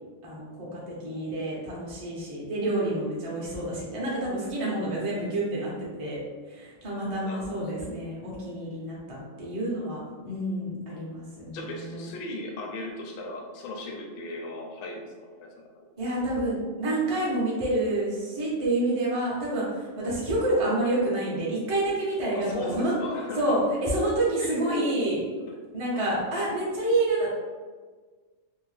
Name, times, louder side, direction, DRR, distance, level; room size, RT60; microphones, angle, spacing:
voice 1, 0.2-5.7 6.0-6.2 6.5-10.0 10.2-12.1 16.0-22.5 22.8-22.9 23.4-25.2 25.7-27.4, right 1 dB, 45° right, -6 dB, 0.4 m, -28 dB
voice 2, 7.2-8.0 10.9-11.1 11.5-15.6 22.3-23.4 24.4-25.0 25.9-26.1, left 2 dB, 65° left, 0 dB, 0.5 m, -37 dB
2.7 x 2.0 x 3.1 m, 1.4 s
omnidirectional pair, 1.4 m